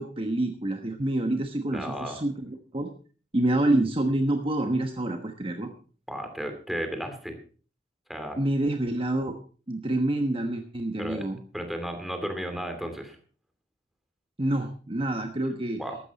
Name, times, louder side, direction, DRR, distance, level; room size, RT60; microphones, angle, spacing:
voice 1, 0.0-2.9 3.3-5.7 8.4-9.4 9.7-11.4 14.4-15.8, right 1 dB, 30° right, 5 dB, 1.2 m, -27 dB
voice 2, 1.7-2.2 6.1-7.4 8.1-8.4 11.0-11.3 11.5-13.2 15.8-16.0, equal, ahead, 5 dB, 2.6 m, -34 dB
15.0 x 12.5 x 4.2 m, 0.39 s
head